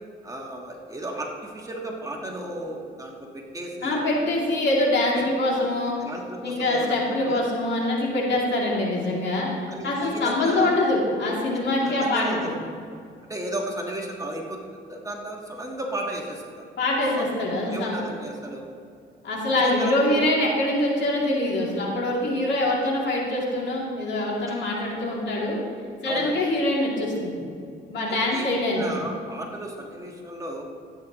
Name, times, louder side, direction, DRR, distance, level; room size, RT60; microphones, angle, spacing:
voice 1, 0.2-4.0 6.0-7.0 7.3-7.5 9.7-10.7 11.8-12.6 13.3-16.6 17.2-18.6 19.6-20.3 24.5-24.6 26.0-26.4 28.3-30.6, right 1 dB, 15° right, -1 dB, 1.5 m, -34 dB
voice 2, 3.8-6.0 6.4-9.5 9.8-12.6 16.8-18.0 19.2-25.6 26.0-27.4 27.9-29.0, left 1 dB, 65° left, -3 dB, 2.7 m, -24 dB
14.0 x 8.9 x 3.0 m, 2.3 s
cardioid pair, 90°, 20 cm